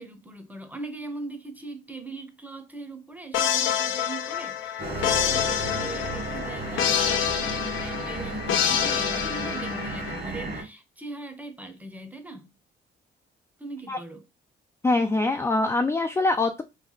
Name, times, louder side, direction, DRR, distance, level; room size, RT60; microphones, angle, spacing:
voice 1, 0.0-12.5 13.6-14.2, right 3 dB, 10° right, 0.7 m, -40 dB
sound 1, 3.3-10.2, left 9 dB, 80° left, 0.5 m, -27 dB
sound 2, 4.8-10.6, right 2 dB, 55° right, 1.5 m, -34 dB
voice 2, 14.8-16.6, left 2 dB, 15° left, 0.3 m, -23 dB
3.1 x 2.2 x 3.8 m
cardioid pair, 90°, 20 cm